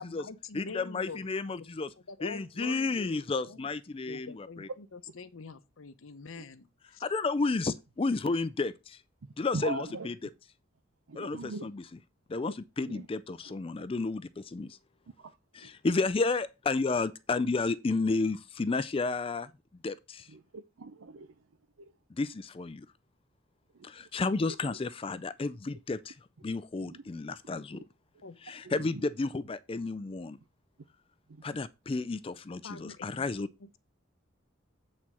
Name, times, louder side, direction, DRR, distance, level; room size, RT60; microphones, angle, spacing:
voice 1, 0.0-1.2 1.5-1.7 2.1-3.7 4.1-7.0 28.2-28.4 32.6-33.3 33.6-33.8, left 4 dB, 75° left, 0.8 m, -45 dB
voice 2, 0.5-1.9 2.2-4.7 7.0-9.0 9.4-10.1 11.1-11.8 12.3-14.8 15.5-19.5 19.8-20.3 22.1-22.9 23.8-26.2 26.4-27.8 28.4-30.4 31.4-33.5, left 3 dB, 25° left, 0.4 m, -32 dB
voice 3, 9.5-10.1 11.1-11.7 12.8-13.1 15.2-15.4 15.6-15.7 20.3-21.3 21.8-21.9 23.7-23.9 24.5-24.6 26.8-27.0 27.7-27.9 28.6-29.0 31.3-31.4, right 3 dB, 75° right, 0.6 m, -41 dB
8.3 x 4.3 x 6.0 m
head